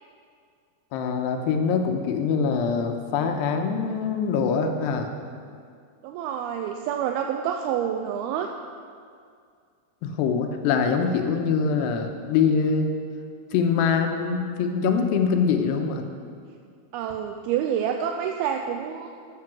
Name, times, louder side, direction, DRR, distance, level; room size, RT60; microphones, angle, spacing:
voice 1, 0.9-5.1 10.0-12.9 13.5-16.0, left 5 dB, 90° left, 5 dB, 3.1 m, -24 dB
voice 2, 6.0-8.5 16.9-19.1, right 9 dB, 80° right, 4 dB, 2.3 m, -28 dB
12.5 x 8.8 x 6.0 m, 2.2 s
omnidirectional pair, 4.7 m